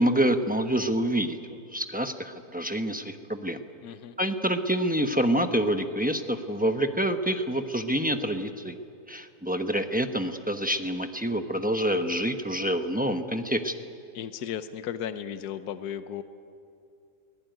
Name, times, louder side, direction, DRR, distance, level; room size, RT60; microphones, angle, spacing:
voice 1, 0.0-1.4 1.7-3.6 4.2-8.7 9.1-13.7, right 1 dB, 5° right, 6 dB, 0.7 m, -27 dB
voice 2, 3.8-4.2 14.1-16.2, left 9 dB, 70° left, 11 dB, 1.4 m, -35 dB
22.5 x 20.0 x 9.2 m, 2.5 s
omnidirectional pair, 1.8 m